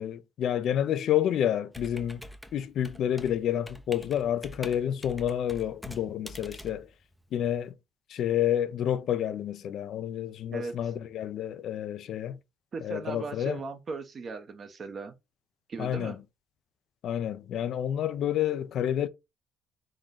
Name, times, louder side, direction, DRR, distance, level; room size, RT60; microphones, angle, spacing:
voice 1, 0.0-2.3 2.5-6.9 7.3-7.8 8.1-12.4 12.8-13.6 15.8-16.2 17.0-19.1, left 10 dB, 60° left, 0.5 m, -29 dB
Computer keyboard, 1.7-7.7, equal, ahead, 0.5 m, -46 dB
voice 2, 12.7-15.1 15.7-16.2, right 4 dB, 40° right, 0.9 m, -37 dB
3.8 x 3.0 x 3.8 m
cardioid pair, 120°, 0 cm